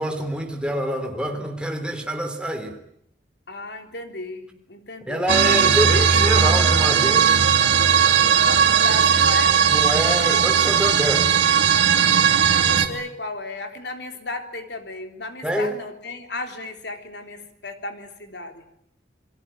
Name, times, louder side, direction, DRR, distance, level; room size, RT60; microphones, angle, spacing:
voice 1, 0.0-2.7 5.1-7.4 9.7-11.3 15.4-15.7, equal, 5° right, 3.6 m, -26 dB
voice 2, 3.5-5.6 8.4-9.6 12.6-18.6, left 2 dB, 70° left, 3.5 m, -34 dB
sound 1, 5.3-12.9, right 7 dB, 85° right, 2.5 m, -17 dB
28.0 x 22.0 x 8.9 m
head